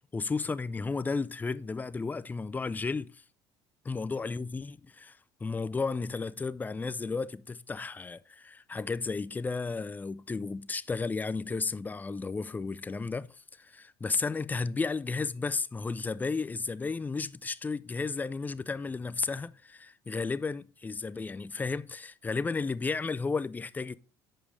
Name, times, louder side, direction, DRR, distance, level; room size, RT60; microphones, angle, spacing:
voice 1, 0.1-3.2 3.8-24.0, left 4 dB, 15° left, 0.4 m, -33 dB
7.3 x 5.1 x 3.2 m
supercardioid pair, 90°, 10 cm